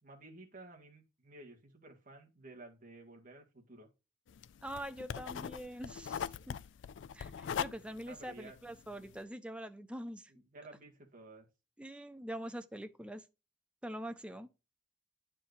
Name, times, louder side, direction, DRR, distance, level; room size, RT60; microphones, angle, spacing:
voice 1, 0.0-3.9 8.1-8.6 10.3-11.5, right 2 dB, 45° right, 2.0 m, -53 dB
sound 1, 4.3-9.2, left 8 dB, 70° left, 0.3 m, -41 dB
voice 2, 4.6-6.6 7.1-10.3 11.8-13.3 13.8-14.5, right 1 dB, 5° right, 0.5 m, -44 dB
9.8 x 4.5 x 2.6 m
head